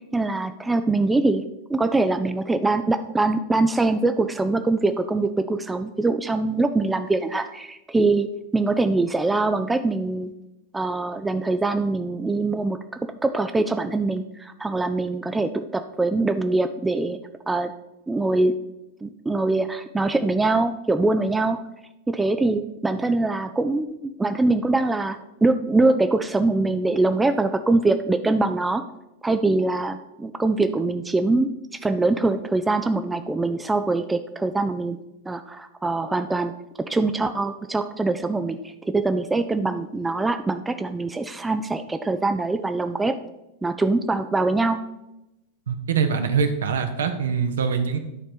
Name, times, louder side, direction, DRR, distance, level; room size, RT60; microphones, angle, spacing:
voice 1, 0.1-1.4 1.7-8.3 8.5-10.3 10.7-12.8 13.2-17.2 17.5-17.7 18.1-18.5 19.0-21.6 22.1-28.8 29.2-31.5 31.8-35.0 35.3-36.5 36.9-43.2 43.6-44.8, right 2 dB, 10° right, 9 dB, 0.4 m, -23 dB
voice 2, 45.7-48.0, right 6 dB, 65° right, 8 dB, 0.9 m, -23 dB
10.5 x 4.3 x 5.1 m, 0.92 s
figure-of-eight pair, 90°, 0 cm